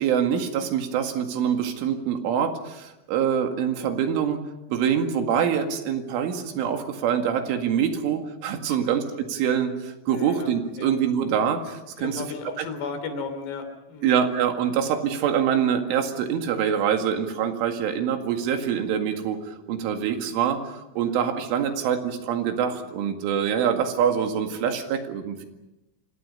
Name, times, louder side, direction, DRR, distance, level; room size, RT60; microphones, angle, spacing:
voice 1, 0.0-4.4 4.7-9.0 9.3-12.3 12.6-12.7 14.0-25.5, right 8 dB, 80° right, 5 dB, 4.5 m, -25 dB
voice 2, 8.6-9.0 10.1-10.5 10.8-10.9 12.0-14.1 18.6-18.8 21.0-21.1, left 4 dB, 60° left, 8 dB, 4.9 m, -35 dB
28.0 x 26.5 x 5.5 m, 0.94 s
omnidirectional pair, 5.6 m